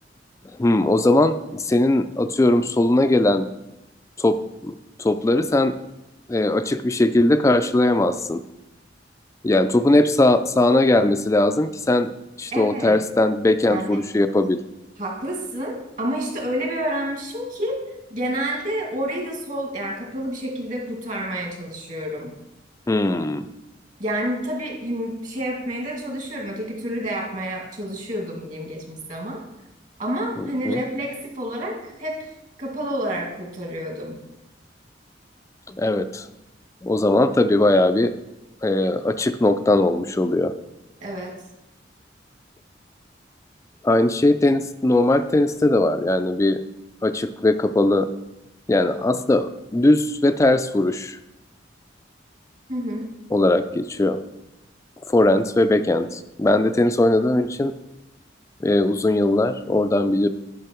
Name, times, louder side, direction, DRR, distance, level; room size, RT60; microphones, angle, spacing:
voice 1, 0.6-3.5 4.2-4.4 4.6-5.7 6.3-8.4 9.4-12.1 12.4-14.6 22.9-23.5 30.4-30.8 35.7-36.3 36.8-38.1 38.6-40.5 43.8-46.6 47.0-48.1 48.7-51.2 53.3-54.2 55.1-57.7 58.6-60.3, left 2 dB, 15° left, 10 dB, 0.3 m, -19 dB
voice 2, 12.5-13.0 13.7-14.0 15.0-22.3 24.0-29.4 30.0-32.2 32.6-34.2 41.0-41.3 52.7-53.1, right 1 dB, 45° right, -1 dB, 2.2 m, -29 dB
10.5 x 5.6 x 4.4 m, 0.94 s
head